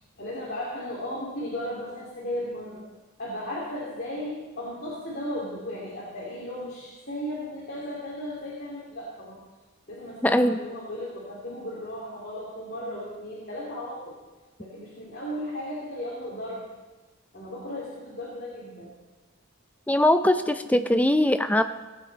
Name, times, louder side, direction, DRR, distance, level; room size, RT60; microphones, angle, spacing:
voice 1, 0.2-2.8 3.2-9.4 9.9-14.1 14.6-16.7 17.3-18.9, left 1 dB, 45° left, -6 dB, 2.6 m, -35 dB
voice 2, 10.2-10.6 19.9-21.6, left 1 dB, 5° left, 9 dB, 0.4 m, -21 dB
18.0 x 8.7 x 4.1 m, 1.2 s
head